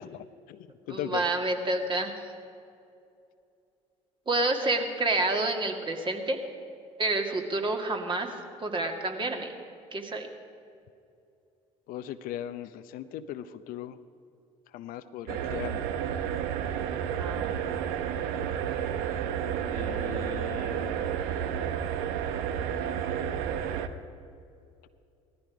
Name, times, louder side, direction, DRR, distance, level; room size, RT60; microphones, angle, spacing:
voice 1, 0.0-1.2 11.9-14.0 14.7-15.9 19.7-21.1, left 11 dB, 65° left, 11 dB, 0.7 m, -39 dB
voice 2, 0.9-2.1 4.3-6.4 7.0-8.3 8.6-9.5 9.9-10.3 17.2-17.5, right 2 dB, 30° right, 3 dB, 2.2 m, -28 dB
sound 1, 15.3-23.9, right 8 dB, 70° right, 0.8 m, -31 dB
18.0 x 13.5 x 5.0 m, 2.5 s
hypercardioid pair, 60°, 16 cm